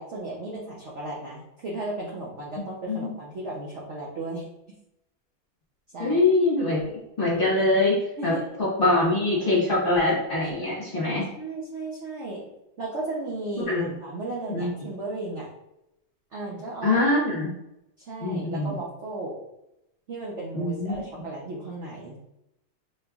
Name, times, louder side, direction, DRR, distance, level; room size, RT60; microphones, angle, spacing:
voice 1, 0.0-4.4 5.9-6.2 8.2-8.5 10.6-10.8 11.1-12.5 12.8-15.5 16.3-17.1 18.0-19.4 20.1-22.2, right 2 dB, 80° right, -4 dB, 0.6 m, -35 dB
voice 2, 6.0-6.8 7.2-8.3 8.6-11.2 13.7-13.9 14.5-14.7 16.8-17.5 18.2-18.7 20.5-20.9, left 2 dB, 35° left, -6 dB, 0.9 m, -23 dB
4.6 x 3.2 x 2.3 m, 0.87 s
omnidirectional pair, 2.2 m